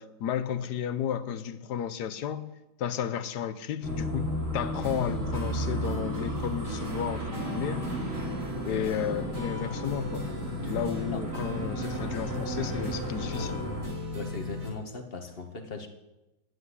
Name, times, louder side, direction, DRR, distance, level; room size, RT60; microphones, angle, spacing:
voice 1, 0.0-7.9 8.6-10.3 10.7-13.6, left 9 dB, 65° left, 12 dB, 1.2 m, -33 dB
sound 1, 3.8-13.9, equal, 40° right, 3.2 m, -34 dB
sound 2, 4.7-14.7, right 1 dB, 60° right, 3.4 m, -38 dB
voice 2, 14.1-15.9, left 3 dB, 35° left, 5 dB, 1.2 m, -38 dB
9.8 x 9.5 x 9.8 m, 0.99 s
omnidirectional pair, 2.1 m